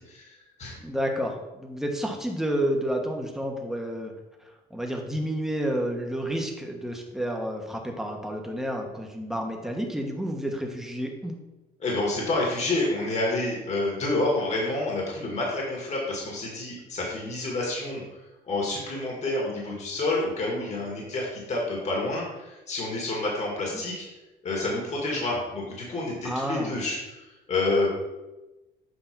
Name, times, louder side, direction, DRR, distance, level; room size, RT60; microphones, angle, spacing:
voice 1, 0.1-0.8 11.8-18.0 18.5-24.1 24.4-28.0, left 2 dB, 40° left, -3 dB, 1.8 m, -28 dB
voice 2, 0.8-4.1 4.7-11.3 26.2-26.7, equal, ahead, 1 dB, 1.1 m, -30 dB
8.0 x 2.8 x 5.9 m, 1.1 s
cardioid pair, 110°, 17 cm